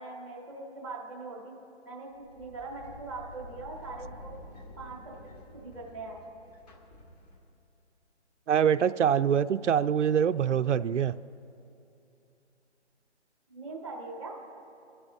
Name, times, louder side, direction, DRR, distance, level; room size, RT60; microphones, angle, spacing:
voice 1, 0.0-1.6 1.8-4.3 4.8-6.2 13.5-14.3, right 3 dB, 5° left, -2 dB, 0.9 m, -41 dB
sound 1, 2.1-7.7, left 1 dB, 35° left, 2.1 m, -49 dB
voice 2, 8.5-11.1, right 8 dB, 90° right, 11 dB, 0.6 m, -24 dB
26.0 x 12.5 x 2.7 m, 2.7 s
hypercardioid pair, 180°, 35 cm